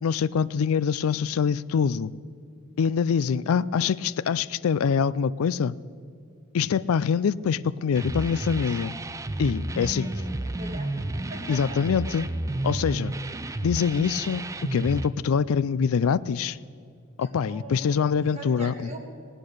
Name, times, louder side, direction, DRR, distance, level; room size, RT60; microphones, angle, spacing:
voice 1, 0.0-2.1 2.8-5.7 6.5-8.9 9.4-10.1 11.5-12.3 12.6-13.1 13.6-14.5 14.7-16.6 17.2-18.9, left 6 dB, 80° left, 18 dB, 0.4 m, -24 dB
sound 1, 7.9-15.1, right 1 dB, 15° right, 0.4 m, -32 dB
voice 2, 10.0-12.0 17.2-19.2, right 1 dB, 30° right, 0 dB, 2.1 m, -43 dB
18.5 x 8.9 x 6.4 m, 2.4 s
head